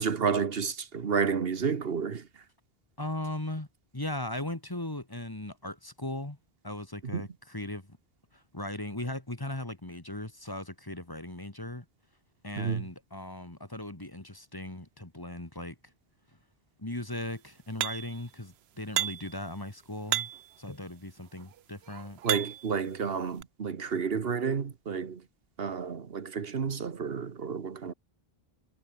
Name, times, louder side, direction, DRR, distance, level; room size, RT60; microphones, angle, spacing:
voice 1, 0.0-2.4 7.1-7.2 12.6-12.9 22.2-25.2 25.6-27.9, right 6 dB, 70° right, 1.4 m, -31 dB
voice 2, 3.0-3.7 3.9-6.4 6.6-8.0 8.3-11.9 12.4-15.8 16.8-20.3 20.6-22.2, left 1 dB, 20° left, 1.9 m, -38 dB
sound 1, 17.8-18.2 19.0-19.4 20.1-20.6 21.4-22.8 23.4-23.5, right 11 dB, 85° right, 0.9 m, -32 dB
omnidirectional pair, 1.0 m